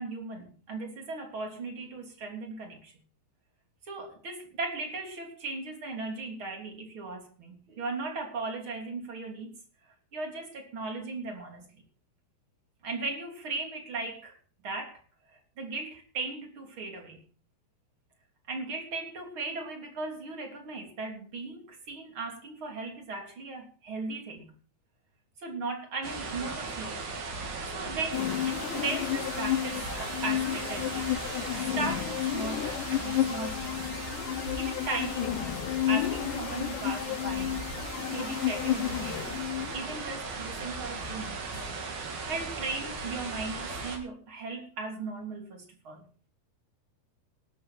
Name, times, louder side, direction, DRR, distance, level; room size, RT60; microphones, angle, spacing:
voice 1, 0.0-2.9 3.9-9.6 10.1-11.8 12.8-14.4 14.6-15.0 15.3-17.2 18.5-24.6 25.4-27.1 27.7-31.1 31.4-33.8 34.6-35.6 35.9-37.8 38.1-39.3 39.7-41.5 42.2-46.1, right 3 dB, 35° right, 3.8 m, -37 dB
sound 1, 26.0-44.0, right 3 dB, 85° right, 5.1 m, -38 dB
sound 2, 28.1-39.9, left 13 dB, 75° left, 2.3 m, -31 dB
18.5 x 12.5 x 4.4 m
omnidirectional pair, 4.1 m